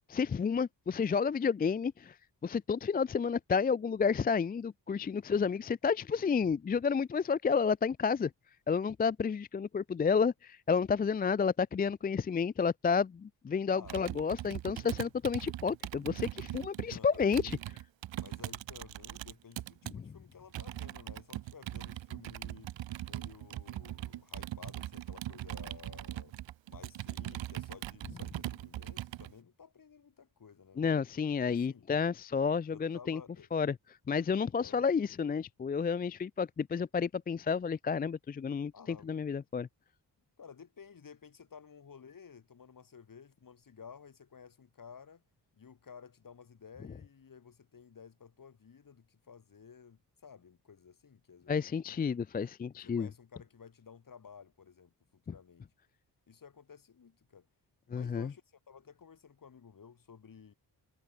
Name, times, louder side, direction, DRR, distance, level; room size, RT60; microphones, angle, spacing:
voice 1, 0.1-2.1 2.4-8.3 8.7-17.6 19.9-20.1 30.8-33.2 33.5-33.8 34.1-39.7 51.5-53.1 57.9-58.3, left 6 dB, 25° left, 0.3 m, -31 dB
voice 2, 13.7-14.3 16.8-17.6 18.2-26.3 26.7-30.9 31.5-31.9 32.7-33.5 34.6-34.8 38.7-39.1 40.4-45.2 45.6-52.0 52.8-55.7 56.3-57.5 57.9-60.5, left 6 dB, 50° left, 2.8 m, -54 dB
Computer keyboard, 13.8-19.9 20.5-29.3, right 14 dB, 90° right, 0.8 m, -41 dB
cardioid pair, 90°, 44 cm